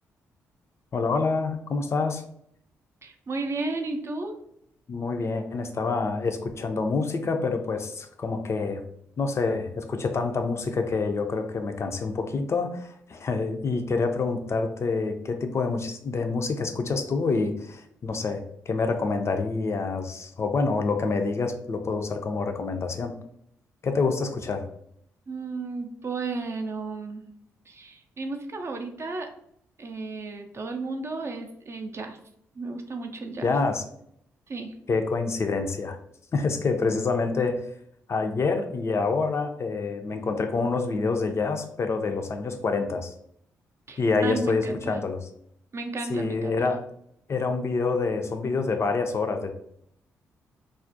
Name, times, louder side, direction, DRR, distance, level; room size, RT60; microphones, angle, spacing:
voice 1, 0.9-2.2 4.9-8.8 9.2-23.1 23.8-24.6 33.4-33.8 34.9-36.0 36.3-37.7 38.1-43.1 44.0-45.2 46.1-46.8 47.3-49.5, left 4 dB, 40° left, 6 dB, 0.4 m, -27 dB
voice 2, 3.0-4.4 25.3-27.2 27.7-29.3 29.8-32.2 32.5-33.5 34.5-34.8 43.9-45.0 45.7-46.7, right 3 dB, 40° right, 5 dB, 0.4 m, -33 dB
2.3 x 2.0 x 2.6 m, 0.70 s
hypercardioid pair, 40°, 7 cm